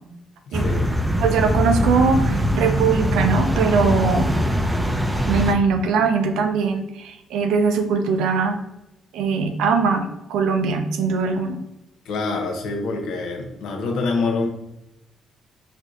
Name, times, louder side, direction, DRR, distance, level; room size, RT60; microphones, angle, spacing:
voice 1, 0.5-0.9 12.0-14.5, left 3 dB, 80° left, 2 dB, 0.7 m, -26 dB
sound 1, 0.5-5.5, equal, 15° right, 0.4 m, -22 dB
voice 2, 1.2-4.3 5.3-8.6 9.1-11.6, right 5 dB, 90° right, 6 dB, 0.4 m, -21 dB
4.4 x 2.6 x 2.4 m, 0.90 s
cardioid pair, 90°, 0 cm